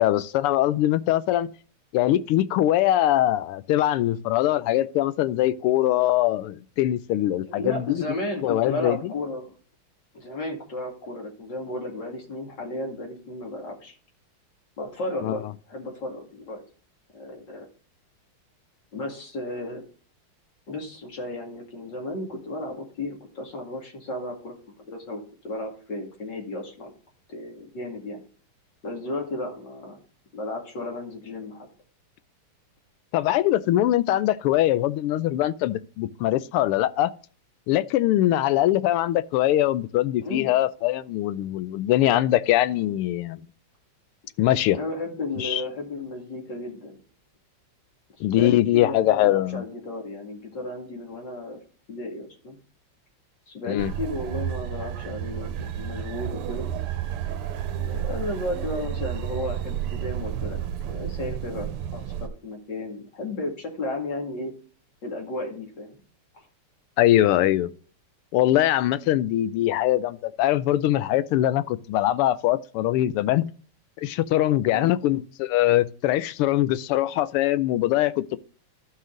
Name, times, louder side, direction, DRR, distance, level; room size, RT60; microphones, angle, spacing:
voice 1, 0.0-1.5 1.9-8.0 8.4-9.1 15.2-15.4 33.1-37.1 37.7-43.4 44.4-44.8 45.4-45.6 48.2-49.6 53.7-53.9 67.0-67.7 68.3-73.5 74.0-78.4, left 14 dB, 85° left, 1.5 m, -22 dB
voice 2, 7.5-9.5 10.1-13.9 14.8-16.6 17.1-17.7 18.9-19.8 20.7-26.9 27.3-28.2 28.8-30.0 30.3-31.7 40.2-40.5 44.7-47.0 48.2-51.6 51.9-52.6 53.5-56.7 57.7-60.6 60.9-64.5 65.0-66.0 66.3-66.4 74.7-74.9, left 2 dB, 55° left, 2.9 m, -34 dB
sound 1, 53.8-62.3, right 10 dB, 85° right, 1.6 m, -31 dB
12.5 x 5.6 x 3.8 m
omnidirectional pair, 2.4 m